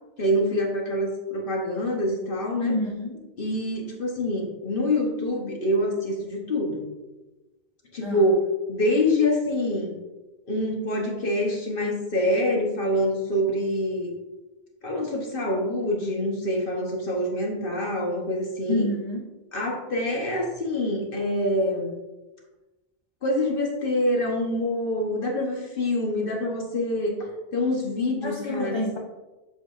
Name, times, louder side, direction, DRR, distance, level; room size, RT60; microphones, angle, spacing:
voice 1, 0.2-2.7 3.4-6.9 7.9-8.4 8.7-10.0 10.5-14.1 14.8-18.9 19.5-22.0 23.2-28.8, left 1 dB, 60° left, -1 dB, 1.2 m, -26 dB
voice 2, 2.6-3.3 8.0-8.2 18.7-19.3 28.2-29.0, left 2 dB, 30° left, 0 dB, 0.6 m, -28 dB
7.3 x 5.7 x 2.5 m, 1.1 s
omnidirectional pair, 1.1 m